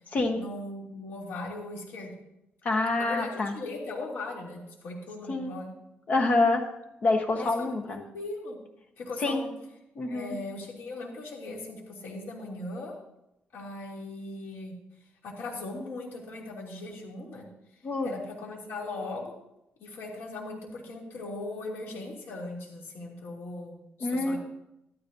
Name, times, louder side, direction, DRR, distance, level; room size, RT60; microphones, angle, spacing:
voice 1, 0.3-2.1 2.9-5.7 7.3-8.6 9.0-9.5 10.1-12.9 13.5-14.7 15.2-17.5 18.0-19.3 19.8-24.4, left 2 dB, 75° left, -2 dB, 3.0 m, -39 dB
voice 2, 2.6-3.5 5.3-5.6 6.1-6.7 7.0-8.0 9.2-9.4 10.0-10.4 17.8-18.1 24.0-24.4, left 2 dB, 40° left, 4 dB, 1.1 m, -26 dB
13.5 x 13.0 x 2.7 m, 0.84 s
cardioid pair, 165°, 4 cm